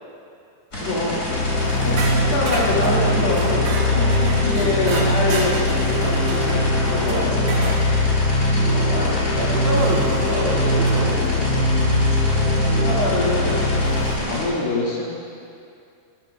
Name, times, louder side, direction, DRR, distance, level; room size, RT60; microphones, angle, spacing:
sound 1, 0.7-14.4, left 1 dB, 20° left, 3.0 m, -29 dB
voice 1, 0.8-1.2 1.5-7.6 8.5-9.7 12.4-13.7 14.3-15.0, left 2 dB, 80° left, -6 dB, 4.5 m, -26 dB
sound 2, 1.3-14.2, left 1 dB, 60° left, 1.7 m, -21 dB
voice 2, 1.6-2.3 3.9-4.1 7.1-7.3 7.5-7.7 9.4-11.3 13.7-13.9, right 1 dB, 50° right, -5 dB, 2.4 m, -28 dB
sound 3, 2.0-7.8 9.8-9.9 10.9-11.3, right 3 dB, 75° right, 3.2 m, -32 dB
26.5 x 10.5 x 2.7 m, 2.4 s
omnidirectional pair, 4.2 m